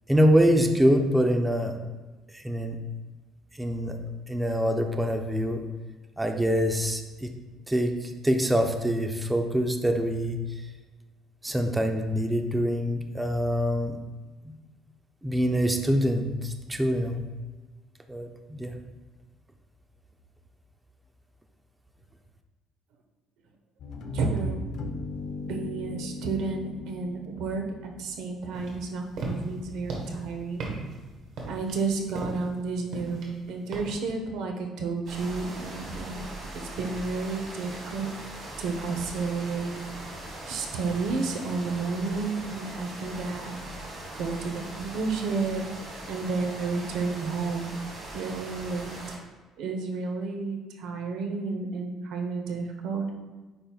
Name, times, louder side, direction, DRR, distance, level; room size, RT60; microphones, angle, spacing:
voice 1, 0.1-1.8 2.3-2.8 3.6-4.0 4.3-5.6 6.2-7.3 7.7-10.4 11.4-14.0 15.2-17.2 18.1-18.8, equal, 10° right, 4 dB, 0.5 m, -25 dB
sound 1, 23.8-28.6, left 2 dB, 55° left, 0.7 m, -38 dB
voice 2, 24.1-24.7 25.4-30.7 31.5-36.3 36.5-38.1 38.6-39.8 40.5-43.6 44.2-45.6 46.1-47.7 48.1-49.0 49.6-53.1, right 4 dB, 70° right, 3 dB, 1.0 m, -31 dB
sound 2, 28.5-34.1, right 2 dB, 55° right, 1.3 m, -37 dB
sound 3, 35.1-49.2, right 1 dB, 40° right, 1.6 m, -40 dB
8.9 x 5.4 x 2.4 m, 1.2 s
cardioid pair, 165°, 0 cm